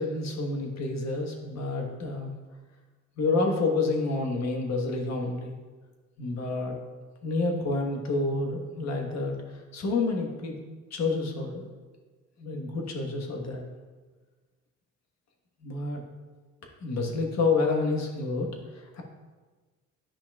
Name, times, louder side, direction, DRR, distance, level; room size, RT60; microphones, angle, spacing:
voice 1, 0.0-2.3 3.2-5.6 6.2-6.7 7.2-10.6 10.9-11.7 12.4-13.6 15.6-16.0 16.8-19.0, left 3 dB, 60° left, 2 dB, 1.3 m, -29 dB
9.8 x 5.9 x 2.3 m, 1.4 s
cardioid pair, 90°, 30 cm